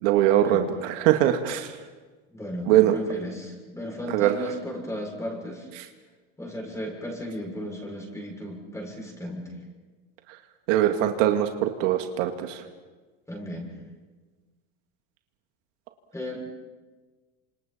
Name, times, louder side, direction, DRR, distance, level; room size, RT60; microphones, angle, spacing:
voice 1, 0.0-1.7 2.7-2.9 4.1-4.3 10.7-12.6, right 12 dB, 75° right, 5 dB, 2.2 m, -22 dB
voice 2, 2.3-5.7 6.4-9.5 13.3-13.8 16.1-16.4, left 1 dB, 10° left, 0 dB, 7.0 m, -35 dB
28.5 x 27.0 x 4.5 m, 1.3 s
supercardioid pair, 135°, 38 cm